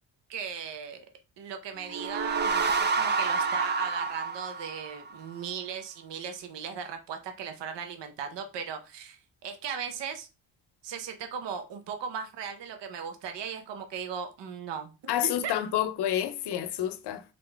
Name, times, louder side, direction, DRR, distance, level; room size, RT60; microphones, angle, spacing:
voice 1, 0.3-1.0 1.4-10.3 10.8-15.5, right 7 dB, 75° right, 0.8 m, -37 dB
sound 1, 1.8-5.3, right 4 dB, 25° right, 0.4 m, -28 dB
voice 2, 15.1-17.2, left 11 dB, 65° left, 0.6 m, -29 dB
3.8 x 3.8 x 3.3 m
cardioid pair, 120°, 43 cm